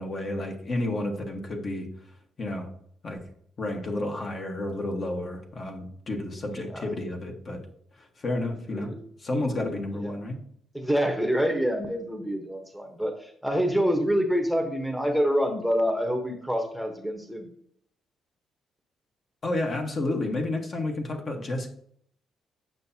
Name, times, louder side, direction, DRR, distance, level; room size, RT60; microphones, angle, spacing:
voice 1, 0.0-1.9 2.4-2.7 3.0-3.2 3.6-7.6 8.0-8.9 9.2-10.4 19.4-21.7, left 2 dB, 45° left, 3 dB, 1.3 m, -31 dB
voice 2, 10.7-17.5, equal, ahead, 4 dB, 1.0 m, -26 dB
7.8 x 5.7 x 2.8 m, 0.65 s
cardioid pair, 90°, 0 cm